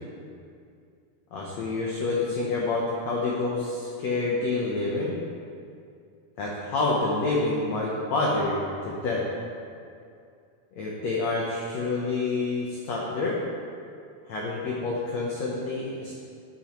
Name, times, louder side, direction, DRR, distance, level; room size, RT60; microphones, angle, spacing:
voice 1, 1.3-5.2 6.4-9.3 10.8-13.4 14.3-16.1, left 3 dB, 75° left, -4 dB, 1.5 m, -28 dB
11.0 x 8.5 x 3.1 m, 2.4 s
omnidirectional pair, 4.5 m